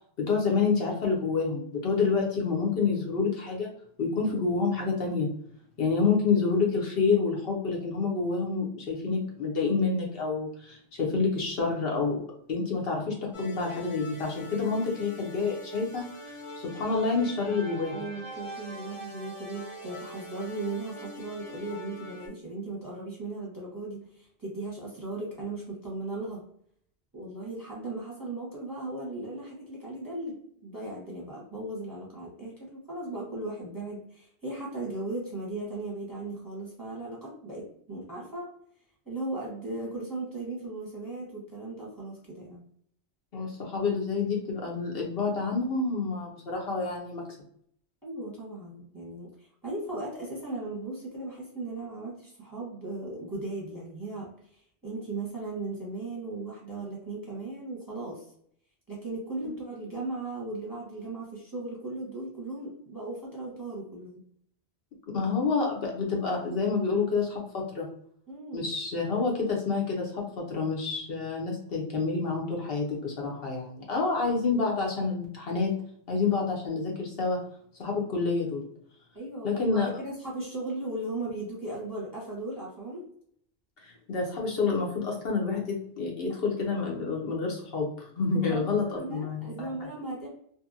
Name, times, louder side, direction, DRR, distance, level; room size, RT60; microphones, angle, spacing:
voice 1, 0.2-3.7 4.0-5.3 5.8-12.2 12.5-16.4 16.6-17.9 43.3-47.3 65.1-67.9 68.5-75.7 76.1-77.4 77.8-78.7 79.4-79.9 83.8-89.7, left 4 dB, 65° left, -1 dB, 0.9 m, -28 dB
sound 1, 13.3-22.3, right 1 dB, 35° left, 0.6 m, -43 dB
voice 2, 17.9-26.4 27.1-30.3 30.6-38.5 39.0-42.6 48.0-58.2 58.9-64.2 68.3-68.6 79.1-83.0 88.4-90.3, right 2 dB, 20° right, -5 dB, 0.8 m, -37 dB
2.8 x 2.6 x 2.5 m, 0.66 s
omnidirectional pair, 1.1 m